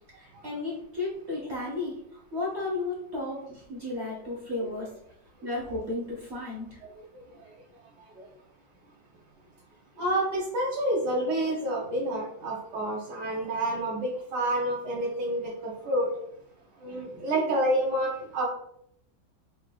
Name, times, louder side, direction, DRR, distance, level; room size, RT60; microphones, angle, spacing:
voice 1, 0.1-4.9 5.4-6.8, left 2 dB, 50° right, -4 dB, 0.8 m, -34 dB
voice 2, 10.0-16.1 16.8-18.5, right 1 dB, 70° right, -4 dB, 1.4 m, -28 dB
4.7 x 3.3 x 2.2 m, 0.72 s
omnidirectional pair, 2.0 m